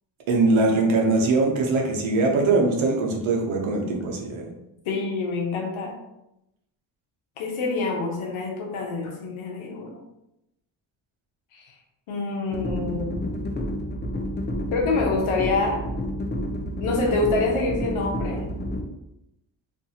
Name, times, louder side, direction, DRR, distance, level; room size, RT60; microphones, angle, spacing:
voice 1, 0.3-4.5, right 3 dB, 75° right, 0 dB, 0.8 m, -22 dB
voice 2, 4.8-6.0 7.4-10.0 11.5-11.7 12.1-13.3 14.7-15.8 16.8-18.4, left 3 dB, 85° left, 0 dB, 0.9 m, -26 dB
sound 1, 12.5-18.8, left 1 dB, 25° left, 0.4 m, -30 dB
2.6 x 2.4 x 2.7 m, 0.86 s
cardioid pair, 65°, 48 cm